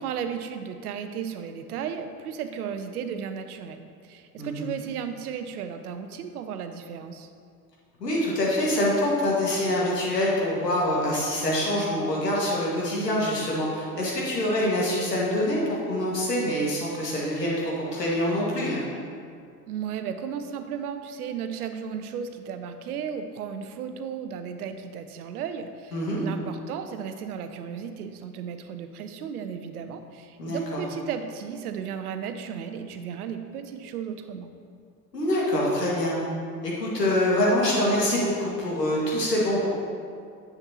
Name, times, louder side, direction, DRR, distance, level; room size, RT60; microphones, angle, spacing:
voice 1, 0.0-7.3 19.7-34.5, right 7 dB, 65° right, 8 dB, 0.8 m, -35 dB
voice 2, 8.0-15.6 15.9-18.9 25.9-26.2 30.4-30.6 35.1-36.2 36.6-39.7, left 1 dB, 80° left, -5 dB, 2.1 m, -25 dB
9.6 x 7.2 x 3.0 m, 2.2 s
figure-of-eight pair, 80°, 48 cm